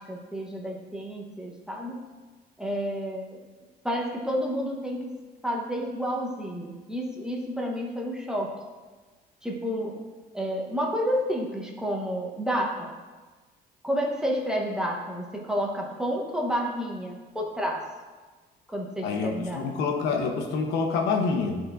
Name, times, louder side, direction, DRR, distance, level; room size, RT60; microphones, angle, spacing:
voice 1, 0.0-2.0 2.6-3.4 3.8-5.1 5.4-8.5 9.4-9.9 10.3-12.9 13.8-17.9 18.7-19.6, equal, 5° right, -1 dB, 1.0 m, -30 dB
voice 2, 19.0-21.6, left 4 dB, 85° left, 3 dB, 0.9 m, -27 dB
11.0 x 4.4 x 2.5 m, 1.3 s
cardioid pair, 110°, 17 cm